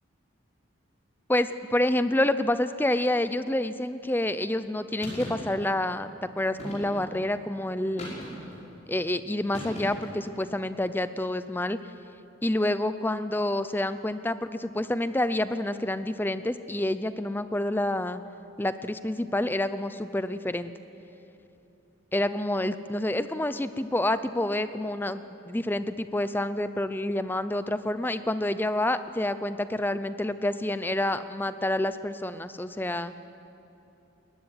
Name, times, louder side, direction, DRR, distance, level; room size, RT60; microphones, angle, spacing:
voice 1, 1.3-8.1 8.9-11.8 12.4-18.2 18.6-20.7 22.1-33.1, left 1 dB, 10° left, 12 dB, 0.5 m, -28 dB
sound 1, 5.0-5.4 6.6-7.1 8.0-8.6 9.5-10.2, equal, 35° left, 5.6 m, -38 dB
20.0 x 14.5 x 9.7 m, 2.9 s
head